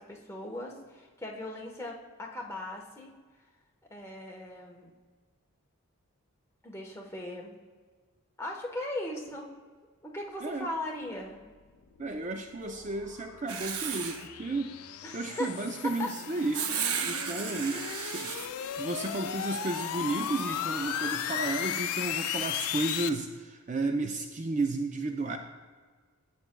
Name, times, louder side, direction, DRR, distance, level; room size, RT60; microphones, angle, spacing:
voice 1, 0.0-3.1 3.9-4.9 6.6-7.5 8.4-9.5 10.0-11.4 15.0-16.1 19.0-19.2, left 1 dB, 10° left, -1 dB, 1.0 m, -38 dB
voice 2, 10.4-10.7 12.0-14.8 15.1-16.6 17.0-18.5 18.8-25.4, right 2 dB, 35° right, 5 dB, 0.4 m, -33 dB
sound 1, 11.8-23.1, left 9 dB, 90° left, 0.5 m, -36 dB
Writing, 13.5-14.3 16.5-18.5, right 7 dB, 80° right, 0.7 m, -33 dB
13.5 x 8.5 x 2.2 m, 1.5 s
head